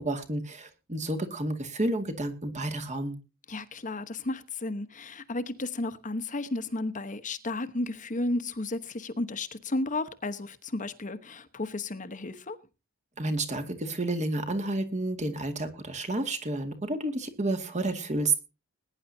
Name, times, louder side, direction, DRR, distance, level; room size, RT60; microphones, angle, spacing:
voice 1, 0.0-3.2 13.2-18.4, right 2 dB, 35° right, 2.1 m, -30 dB
voice 2, 3.5-12.6, left 2 dB, 35° left, 1.1 m, -33 dB
20.5 x 10.5 x 2.8 m
head